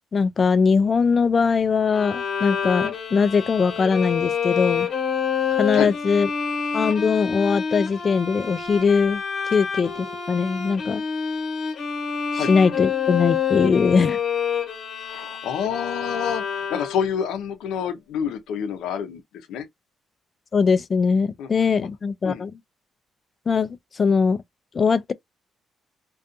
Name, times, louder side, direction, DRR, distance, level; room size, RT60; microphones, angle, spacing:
voice 1, 0.1-4.9 5.5-6.3 6.7-9.2 9.5-11.0 12.3-14.2 20.5-22.5 23.5-24.4 24.7-25.1, left 5 dB, 40° left, 0.3 m, -21 dB
Bowed string instrument, 1.9-17.2, left 7 dB, 55° left, 1.0 m, -27 dB
voice 2, 15.1-19.6 21.4-21.5 22.2-22.4, left 8 dB, 85° left, 0.6 m, -28 dB
2.5 x 2.3 x 2.5 m
cardioid pair, 90°, 0 cm